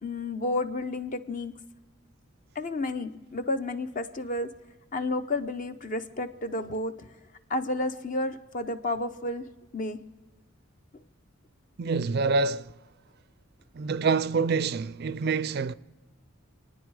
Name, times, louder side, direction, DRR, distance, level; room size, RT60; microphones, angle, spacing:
voice 1, 0.0-1.5 2.5-4.5 4.9-7.1 7.5-9.5 9.7-10.0 10.9-11.0, left 2 dB, 40° left, 0.7 m, -31 dB
voice 2, 11.8-12.7 13.7-15.7, right 4 dB, 50° right, 0.4 m, -26 dB
28.5 x 9.7 x 4.8 m
head